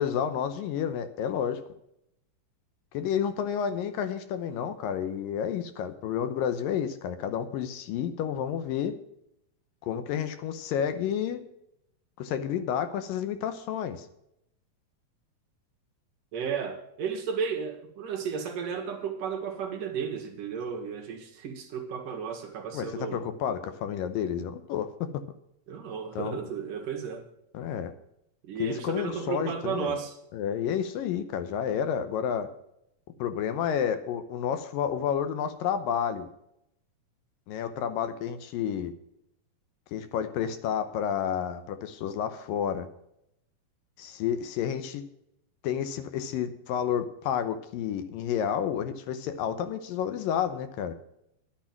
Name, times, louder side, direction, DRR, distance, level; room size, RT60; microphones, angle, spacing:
voice 1, 0.0-1.6 2.9-8.9 9.8-11.4 12.2-14.1 22.7-24.9 26.2-26.4 27.5-27.9 28.6-30.0 30.3-32.5 33.2-36.3 37.5-38.9 39.9-42.9 44.0-45.0 45.6-50.9, left 8 dB, 75° left, 2.5 m, -30 dB
voice 2, 16.3-23.2 25.7-27.2 28.4-30.2, right 6 dB, 65° right, 3.4 m, -33 dB
11.5 x 10.5 x 5.8 m
omnidirectional pair, 4.2 m